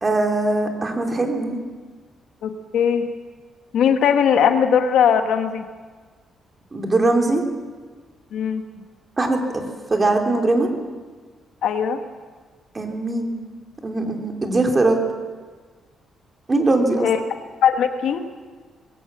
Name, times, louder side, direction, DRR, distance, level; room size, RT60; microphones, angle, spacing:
voice 1, 0.0-1.6 6.7-7.4 9.2-9.6 9.9-10.7 12.7-13.4 13.8-15.0 16.5-17.1, right 2 dB, 25° right, 2 dB, 3.2 m, -20 dB
voice 2, 2.4-3.1 3.7-5.7 8.3-8.8 11.6-12.0 17.0-17.2 17.6-18.2, left 8 dB, 75° left, 6 dB, 1.6 m, -19 dB
21.0 x 17.5 x 7.4 m, 1.5 s
cardioid pair, 120°, 0 cm